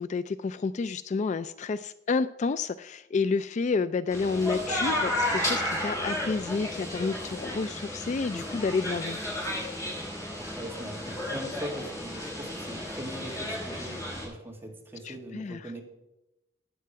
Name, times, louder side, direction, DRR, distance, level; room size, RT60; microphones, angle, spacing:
voice 1, 0.0-9.2 15.0-15.7, left 4 dB, 40° left, 15 dB, 0.3 m, -30 dB
sound 1, 4.1-14.2, left 1 dB, 20° left, 5.5 m, -33 dB
voice 2, 10.6-15.8, right 1 dB, 10° right, 1 dB, 2.2 m, -41 dB
15.0 x 9.5 x 4.7 m, 0.92 s
head